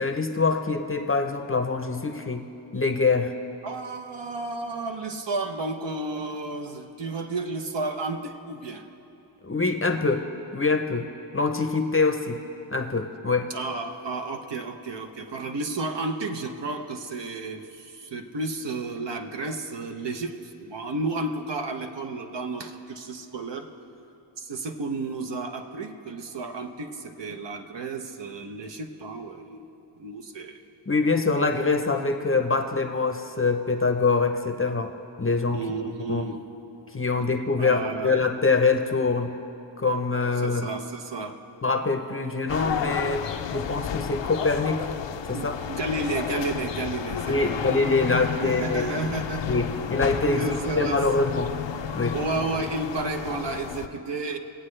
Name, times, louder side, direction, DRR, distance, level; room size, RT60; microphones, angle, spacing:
voice 1, 0.0-2.5 2.7-3.3 9.4-10.3 10.5-11.1 11.3-12.4 12.7-13.5 30.9-34.9 35.2-35.6 36.1-36.3 36.9-39.3 39.8-40.7 41.6-44.9 45.3-45.6 47.3-49.0 49.5-51.5 51.9-52.2, left 3 dB, 25° left, 6 dB, 0.7 m, -24 dB
voice 2, 3.6-8.9 13.5-23.7 24.4-29.6 30.0-30.6 35.5-36.4 37.6-38.2 40.4-41.4 45.3-47.7 48.4-49.6 50.3-51.0 52.1-54.4, right 3 dB, 60° right, 5 dB, 0.9 m, -32 dB
sound 1, 42.5-53.9, left 8 dB, 60° left, 0.6 m, -32 dB
21.0 x 8.3 x 3.3 m, 2.8 s
cardioid pair, 70°, 49 cm